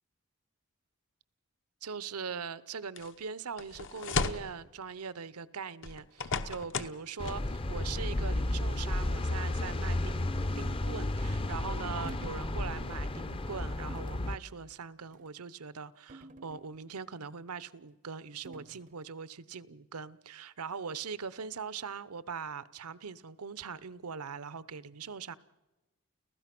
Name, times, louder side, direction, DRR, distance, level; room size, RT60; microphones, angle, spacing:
voice 1, 1.8-10.3 10.6-25.4, right 6 dB, 80° right, 0.8 m, -41 dB
sound 1, 3.0-3.1 3.6-4.5 5.8-7.0 7.2-7.4, left 4 dB, 60° left, 1.0 m, -34 dB
sound 2, 7.2-14.4, left 1 dB, 25° left, 0.6 m, -33 dB
sound 3, 12.0-12.5 12.9-13.1 13.9-14.3 15.0-15.3 16.1-17.0 18.4-19.0, right 2 dB, 35° right, 0.6 m, -50 dB
30.0 x 15.5 x 6.0 m
head